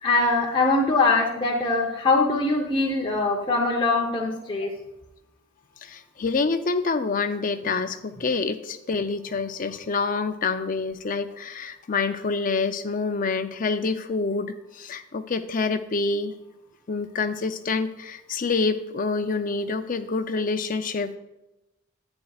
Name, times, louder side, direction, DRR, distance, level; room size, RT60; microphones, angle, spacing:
voice 1, 0.0-4.7, left 3 dB, 25° left, -1 dB, 0.8 m, -22 dB
voice 2, 5.8-16.3 16.9-21.2, left 4 dB, 40° left, 9 dB, 0.5 m, -27 dB
10.5 x 8.9 x 2.4 m, 0.95 s
head